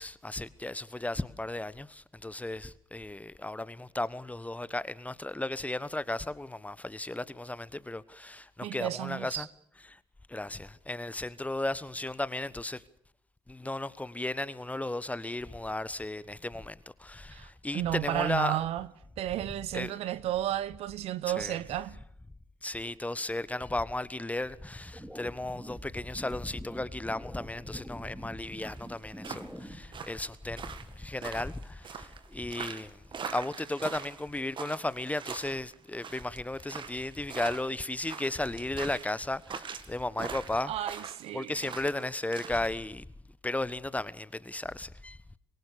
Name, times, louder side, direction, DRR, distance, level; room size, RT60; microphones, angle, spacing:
voice 1, 0.0-9.5 9.8-10.0 10.3-12.8 13.5-18.6 19.7-19.9 21.3-21.6 22.6-40.7 41.3-43.1 43.4-45.2, left 2 dB, 10° left, 1.2 m, -35 dB
voice 2, 8.6-9.5 17.3-18.9 19.2-22.0 40.6-41.6, right 13 dB, 60° right, 0.9 m, -33 dB
sound 1, 24.8-29.8, equal, 5° right, 3.2 m, -45 dB
sound 2, 28.6-42.7, right 6 dB, 45° right, 2.1 m, -42 dB
26.0 x 22.5 x 6.8 m
figure-of-eight pair, 45°, 12 cm